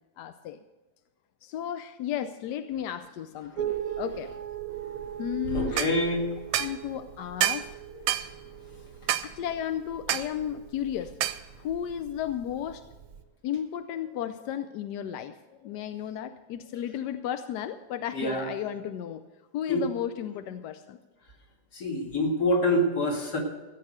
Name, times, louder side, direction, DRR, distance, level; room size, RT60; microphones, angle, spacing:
voice 1, 0.2-0.6 1.4-4.3 5.2-5.9 6.5-8.1 9.2-11.1 11.6-12.8 13.4-19.2 19.5-21.0, left 10 dB, 70° left, 10 dB, 1.1 m, -34 dB
sound 1, 3.6-13.2, right 10 dB, 60° right, 0.9 m, -39 dB
voice 2, 5.5-6.2 18.1-18.5 19.7-19.9 21.7-23.4, left 1 dB, 55° left, 0 dB, 2.8 m, -26 dB
sound 2, 5.8-5.9 6.5-6.8 7.4-7.7 8.1-8.3 9.1-9.3 10.1-10.3 11.2-11.4, right 13 dB, 85° right, 1.4 m, -27 dB
15.0 x 8.6 x 6.6 m, 1.2 s
omnidirectional pair, 2.1 m